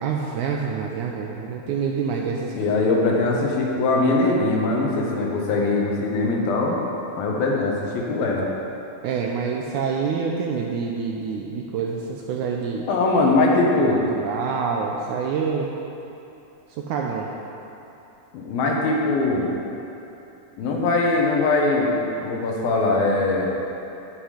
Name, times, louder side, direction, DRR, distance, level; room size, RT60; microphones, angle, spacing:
voice 1, 0.0-2.8 9.0-12.9 13.9-15.7 16.8-17.3, right 6 dB, 80° right, 0 dB, 1.8 m, -27 dB
voice 2, 2.5-6.8 7.2-8.4 12.9-14.0 18.3-19.5 20.6-23.5, left 2 dB, 90° left, -2 dB, 3.1 m, -21 dB
15.0 x 5.6 x 5.0 m, 2.9 s
omnidirectional pair, 4.1 m